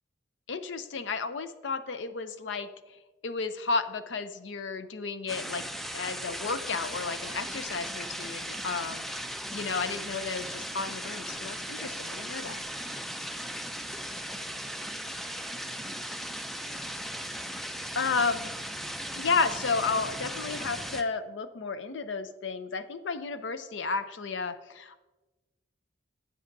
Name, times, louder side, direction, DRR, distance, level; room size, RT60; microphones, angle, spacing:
voice 1, 0.5-2.7 3.2-5.6 5.9-12.6 17.9-18.5 19.2-25.0, left 4 dB, 80° left, 11 dB, 0.6 m, -32 dB
sound 1, 5.3-21.0, equal, ahead, 0.4 m, -37 dB
13.0 x 8.6 x 2.7 m, 1.1 s
head